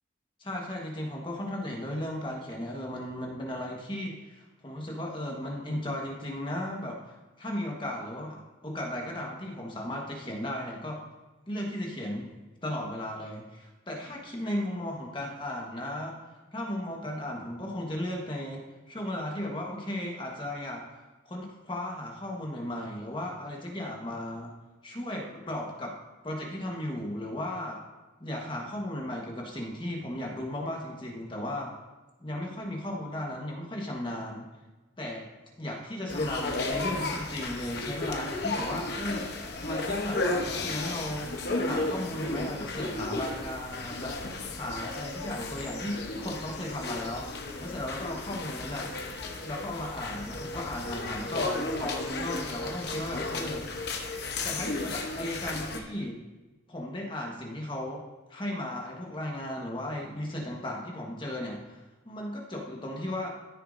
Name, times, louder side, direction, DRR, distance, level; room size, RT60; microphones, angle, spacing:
voice 1, 0.4-11.0 11.5-12.3 12.6-16.2 16.5-20.9 21.3-24.5 24.8-25.9 26.2-27.8 28.2-31.7 32.2-34.5 35.0-35.3 35.6-47.3 47.6-48.9 49.4-53.7 54.4-56.2 56.7-58.0 58.3-63.3, left 1 dB, 25° left, -1 dB, 1.3 m, -36 dB
sound 1, 36.1-55.8, left 2 dB, 55° left, 0.9 m, -34 dB
13.5 x 6.6 x 2.6 m, 1.2 s
head